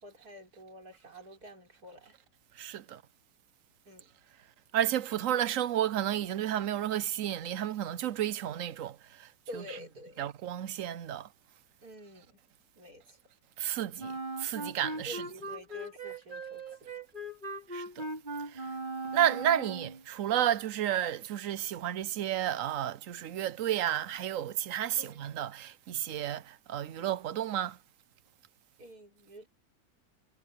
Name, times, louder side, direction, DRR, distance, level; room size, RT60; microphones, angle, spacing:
voice 1, 0.0-2.2 3.9-4.1 9.5-10.3 11.8-12.4 12.8-13.2 15.0-16.9 19.3-19.4 25.0-25.3 28.8-29.5, equal, 85° right, 6.1 m, -48 dB
voice 2, 4.7-8.9 9.5-9.8 10.2-11.2 13.6-14.1 14.4-15.2 17.7-17.8 19.1-26.4 26.7-27.7, right 11 dB, 65° right, 1.0 m, -31 dB
Wind instrument woodwind instrument, 14.0-20.0, right 2 dB, 30° right, 3.9 m, -39 dB
omnidirectional pair, 1.6 m